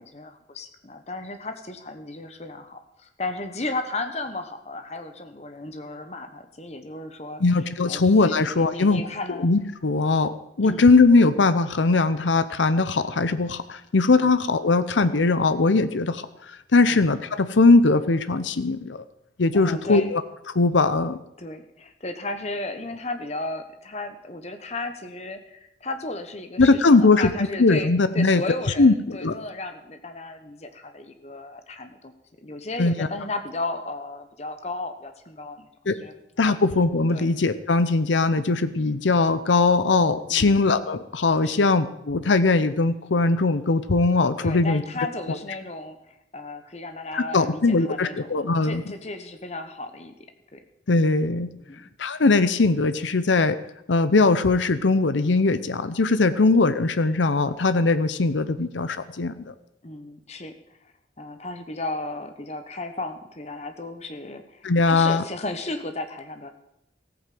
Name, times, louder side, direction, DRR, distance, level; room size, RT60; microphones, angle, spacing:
voice 1, 0.0-7.4 7.9-9.5 10.6-10.9 14.2-14.3 16.9-17.0 19.5-20.1 21.4-32.1 32.4-36.6 37.1-37.3 40.3-40.5 41.4-41.7 44.4-50.1 50.5-50.6 51.7-51.8 59.8-60.5 61.2-66.5, left 2 dB, 35° left, 7 dB, 1.1 m, -34 dB
voice 2, 7.4-9.0 9.4-19.0 19.4-20.2 20.5-21.2 26.6-27.3 27.6-28.4 28.8-29.3 32.8-33.1 35.9-36.0 36.4-44.8 47.1-48.8 50.9-51.5 52.0-53.6 53.9-59.3 64.6-65.2, left 3 dB, 90° left, 12 dB, 0.7 m, -20 dB
14.5 x 9.0 x 7.6 m, 0.84 s
head